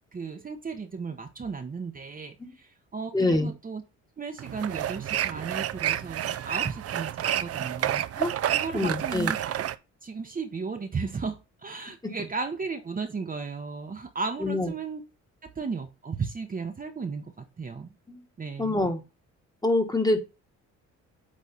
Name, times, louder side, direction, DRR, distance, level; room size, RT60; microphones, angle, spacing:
voice 1, 0.1-3.8 4.2-8.0 8.5-9.4 10.0-15.0 15.4-17.9 18.4-18.8, right 4 dB, 30° right, 0.9 m, -35 dB
voice 2, 3.1-3.5 8.2-8.4 8.7-9.3 12.0-12.1 14.4-14.7 18.1-18.2 18.6-19.0 19.6-20.2, left 2 dB, 15° left, 1.4 m, -25 dB
sound 1, 4.4-9.8, right 11 dB, 55° right, 0.5 m, -29 dB
8.5 x 3.2 x 4.0 m
cardioid pair, 90°, 30 cm